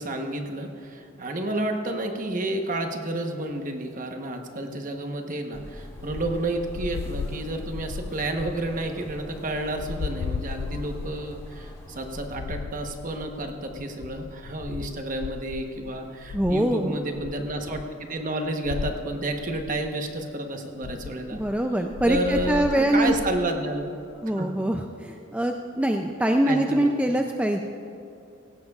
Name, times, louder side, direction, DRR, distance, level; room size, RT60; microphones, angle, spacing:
voice 1, 0.0-17.8 18.1-21.4 22.1-23.9 24.4-24.5 26.4-26.9, right 1 dB, 45° right, 4 dB, 1.1 m, -30 dB
sound 1, 5.5-12.3, equal, 15° left, 1.6 m, -43 dB
sound 2, 6.0-11.6 11.9-16.8 17.1-18.2 18.4-20.2 20.8-24.2, left 5 dB, 80° left, 0.3 m, -37 dB
voice 2, 16.3-17.0 21.3-23.1 24.2-27.6, right 1 dB, 5° right, 3 dB, 0.4 m, -24 dB
17.5 x 16.0 x 2.4 m, 2.5 s
head